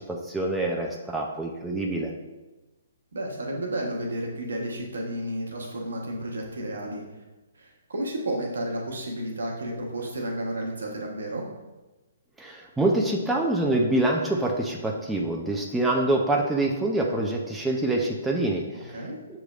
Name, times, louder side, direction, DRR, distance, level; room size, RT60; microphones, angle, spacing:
voice 1, 0.1-2.1 12.4-19.0, right 2 dB, 5° right, -1 dB, 0.4 m, -25 dB
voice 2, 3.1-7.0 7.5-11.4 18.7-19.2, right 1 dB, 70° right, 0 dB, 1.0 m, -32 dB
6.7 x 3.1 x 2.4 m, 1.1 s
figure-of-eight pair, 130°, 0 cm